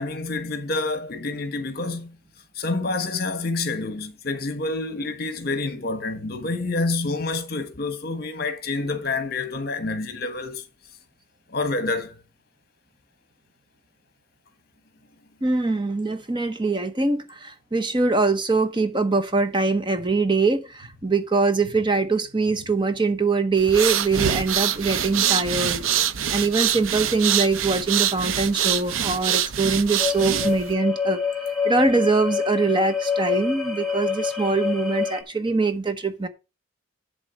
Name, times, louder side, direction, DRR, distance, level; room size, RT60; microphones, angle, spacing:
voice 1, 0.0-2.2 2.5-10.6 11.5-12.2, left 3 dB, 50° left, 1.4 m, -28 dB
voice 2, 15.4-25.9 26.3-31.2 31.6-36.3, right 3 dB, 25° right, 0.8 m, -23 dB
sound 1, 23.6-30.7, right 10 dB, 75° right, 0.6 m, -24 dB
sound 2, 30.0-35.2, left 6 dB, ahead, 1.3 m, -27 dB
11.0 x 3.8 x 6.4 m
head